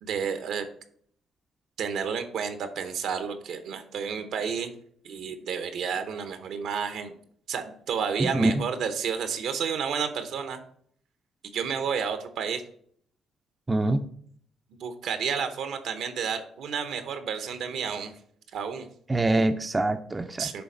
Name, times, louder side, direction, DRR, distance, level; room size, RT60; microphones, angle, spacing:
voice 1, 0.0-0.7 1.8-4.7 5.0-7.2 7.5-10.6 11.5-12.6 14.8-18.1 18.5-18.9 20.4-20.6, right 6 dB, 75° right, 9 dB, 0.9 m, -31 dB
voice 2, 8.2-8.6 13.7-14.0 19.1-20.6, right 2 dB, 25° right, 8 dB, 0.5 m, -25 dB
6.9 x 3.5 x 5.3 m, 0.62 s
supercardioid pair, 70°, 0 cm